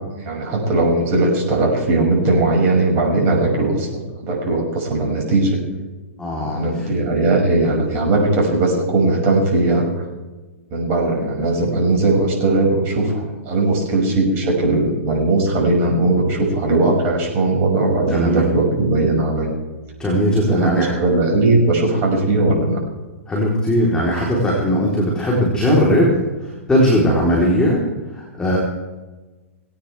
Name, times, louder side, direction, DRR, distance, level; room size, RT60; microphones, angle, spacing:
voice 1, 0.2-5.6 6.4-9.9 10.7-19.5 20.4-22.8, right 2 dB, 35° right, 0 dB, 6.2 m, -18 dB
voice 2, 6.2-6.9 18.1-18.5 20.0-20.9 23.3-26.1 26.4-27.8 28.1-28.6, equal, 10° left, -4 dB, 3.8 m, -18 dB
19.0 x 17.5 x 3.5 m, 1.2 s
figure-of-eight pair, 110°, 7 cm